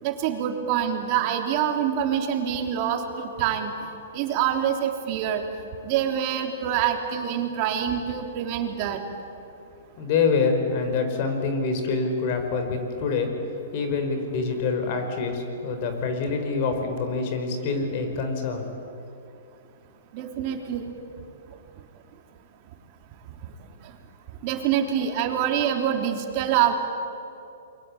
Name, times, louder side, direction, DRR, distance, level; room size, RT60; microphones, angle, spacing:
voice 1, 0.0-3.7 4.1-5.4 5.8-9.0 20.1-20.8 24.4-26.7, right 9 dB, 40° right, 4 dB, 3.5 m, -25 dB
voice 2, 10.0-13.3 13.7-18.7, left 4 dB, 45° left, 6 dB, 5.1 m, -26 dB
29.0 x 23.0 x 8.8 m, 2.6 s
hypercardioid pair, 145°, 0 cm